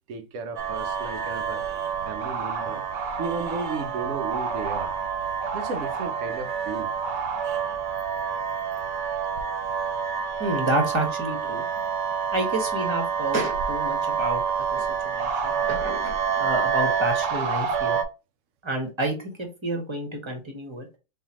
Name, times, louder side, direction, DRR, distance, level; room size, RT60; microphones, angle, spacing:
voice 1, 0.1-1.6 2.0-2.9 3.2-4.9 5.5-6.9, right 4 dB, 55° right, 0.8 m, -34 dB
sound 1, 0.6-18.0, right 6 dB, 75° right, 1.4 m, -28 dB
voice 2, 10.4-11.6 12.3-18.0 18.6-20.9, right 2 dB, 15° right, 1.1 m, -29 dB
4.3 x 3.5 x 2.9 m
omnidirectional pair, 2.0 m